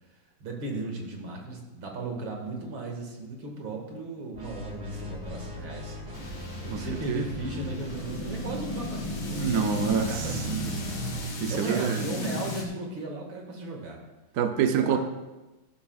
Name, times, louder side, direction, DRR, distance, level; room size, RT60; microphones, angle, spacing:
voice 1, 0.4-6.0 6.6-11.0 11.5-14.0 14.7-15.0, right 2 dB, 85° right, 1 dB, 2.7 m, -36 dB
sound 1, 4.3-11.4, right 1 dB, 20° right, 1.5 m, -39 dB
sound 2, 6.1-12.6, left 1 dB, 85° left, 2.4 m, -35 dB
voice 2, 6.7-7.2 9.3-10.3 11.4-12.1 14.4-15.0, right 7 dB, 60° right, 6 dB, 1.0 m, -26 dB
14.0 x 11.5 x 2.4 m, 1.1 s
omnidirectional pair, 2.1 m